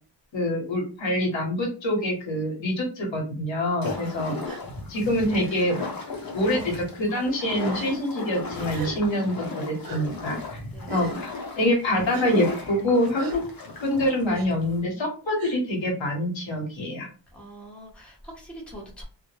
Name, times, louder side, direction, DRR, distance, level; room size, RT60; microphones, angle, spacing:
voice 1, 0.3-4.4 4.9-5.8 6.3-10.6 10.9-13.4 13.8-17.1, left 1 dB, 70° left, 1 dB, 1.0 m, -25 dB
sound 1, 3.8-14.8, left 3 dB, 45° left, 0.8 m, -36 dB
voice 2, 3.9-5.0 10.7-11.1 17.3-19.0, right 1 dB, ahead, -3 dB, 0.8 m, -44 dB
Gasp, 4.4-4.6 5.5-5.6 6.4-6.8 7.7-8.0 8.7-9.0 9.8-10.0 10.9-11.2 12.1-12.3 13.2-13.4 14.3-14.5 15.4-15.6, right 4 dB, 50° right, 0.5 m, -38 dB
2.2 x 2.1 x 3.0 m, 0.36 s
wide cardioid pair, 80°, 47 cm